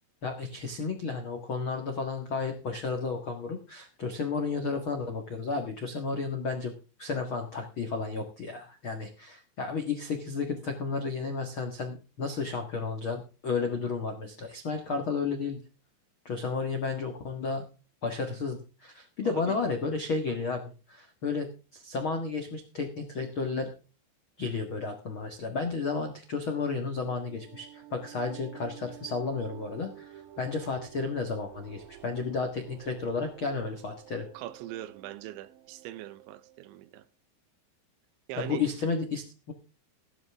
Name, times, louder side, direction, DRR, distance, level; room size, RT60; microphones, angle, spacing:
voice 1, 0.2-6.7 7.0-15.6 16.2-17.6 18.0-23.7 24.4-34.2 38.3-39.5, left 4 dB, 75° left, 1.1 m, -32 dB
voice 2, 19.3-19.6 34.3-37.1 38.3-38.7, right 14 dB, 80° right, 3.1 m, -41 dB
sound 1, 26.6-36.8, right 12 dB, 65° right, 2.5 m, -50 dB
16.0 x 12.0 x 3.6 m
omnidirectional pair, 5.4 m